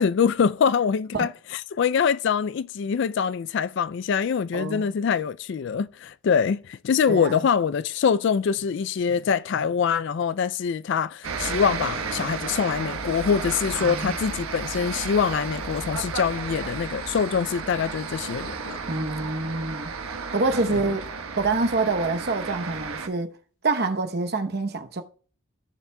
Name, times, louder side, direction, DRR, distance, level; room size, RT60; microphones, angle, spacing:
voice 1, 0.0-18.8 20.7-20.8, left 6 dB, 55° left, 0.3 m, -24 dB
voice 2, 4.5-4.9 7.1-7.4 13.8-14.1 18.9-19.9 20.3-21.1 21.4-23.4 23.6-25.0, right 3 dB, 45° right, 0.9 m, -26 dB
sound 1, 11.2-23.1, right 5 dB, 80° right, 1.2 m, -33 dB
15.5 x 7.2 x 2.2 m
head